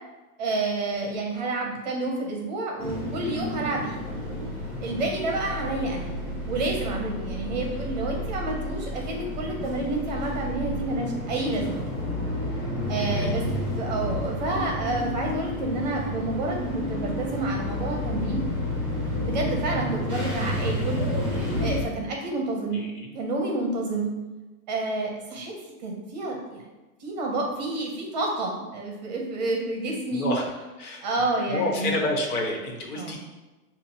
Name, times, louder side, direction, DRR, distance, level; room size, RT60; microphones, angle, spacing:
voice 1, 0.4-4.0 4.8-6.1 6.5-11.8 12.9-13.4 13.7-18.4 19.2-21.0 21.6-22.8 23.1-24.2 24.7-25.5 25.8-26.6 27.0-30.3 31.0-31.9 32.9-33.2, right 2 dB, 30° right, 0 dB, 0.6 m, -29 dB
sound 1, 2.8-21.8, left 1 dB, 5° right, 0.9 m, -30 dB
voice 2, 5.7-6.0 13.1-13.4 22.7-23.1 30.1-30.4 30.8-31.0 31.5-33.2, left 1 dB, 80° left, 0 dB, 1.3 m, -29 dB
7.1 x 2.4 x 2.8 m, 1.1 s
supercardioid pair, 175°, 44 cm